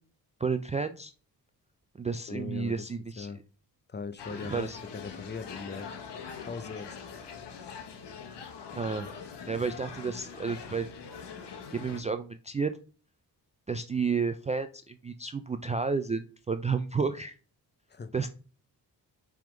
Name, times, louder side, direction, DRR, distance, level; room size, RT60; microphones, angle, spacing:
voice 1, 0.4-1.1 2.0-3.3 4.5-4.8 8.7-9.1 9.5-10.9 11.4-12.7 13.7-17.4 18.1-18.3, right 5 dB, 20° right, 0.3 m, -31 dB
voice 2, 2.3-2.9 3.2-3.4 3.9-5.9 6.4-7.0 7.6-7.8 17.9-18.1, left 5 dB, 25° left, 0.6 m, -40 dB
sound 1, 4.2-12.0, left 6 dB, 85° left, 1.1 m, -43 dB
5.7 x 3.7 x 5.0 m
cardioid pair, 85°, 40 cm